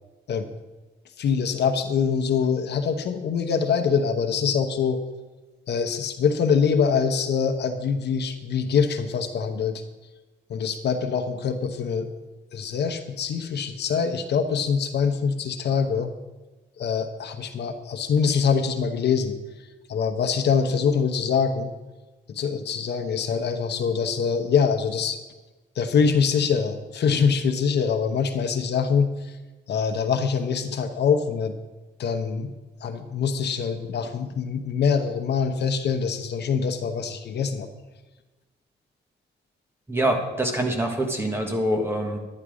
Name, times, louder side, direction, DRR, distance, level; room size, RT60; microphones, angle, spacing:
voice 1, 1.2-5.0 5.7-9.8 10.5-12.1 12.5-16.1 16.8-19.3 19.9-21.7 22.3-25.2 25.8-29.1 29.7-31.5 32.0-32.5 32.8-37.7, left 6 dB, 65° left, 7 dB, 0.9 m, -24 dB
voice 2, 39.9-42.2, right 1 dB, 15° right, 3 dB, 1.4 m, -25 dB
11.0 x 9.9 x 5.0 m, 1.2 s
wide cardioid pair, 165°, 19 cm